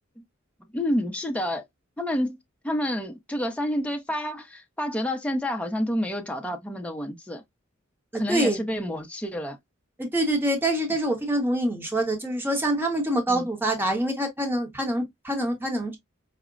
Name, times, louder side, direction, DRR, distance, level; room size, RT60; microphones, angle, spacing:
voice 1, 0.7-1.6 2.0-2.4 2.6-7.4 8.1-9.6 13.3-13.5, equal, 5° left, 0.5 m, -29 dB
voice 2, 8.1-8.6 10.0-16.0, right 1 dB, 10° right, 0.9 m, -25 dB
4.9 x 2.0 x 2.4 m
head